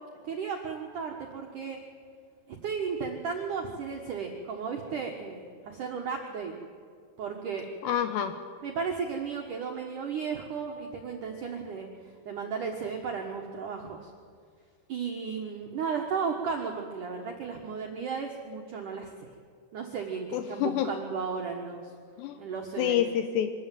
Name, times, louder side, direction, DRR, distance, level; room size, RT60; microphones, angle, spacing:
voice 1, 0.2-1.8 2.5-6.5 7.2-7.7 8.6-11.9 12.3-14.1 14.9-19.3 19.7-21.9 22.4-23.0, right 6 dB, 75° right, 1 dB, 1.8 m, -34 dB
voice 2, 7.8-8.3 20.3-20.9 22.2-22.4 22.8-23.5, left 10 dB, 85° left, 8 dB, 2.5 m, -27 dB
24.5 x 13.5 x 9.2 m, 2.1 s
omnidirectional pair, 5.9 m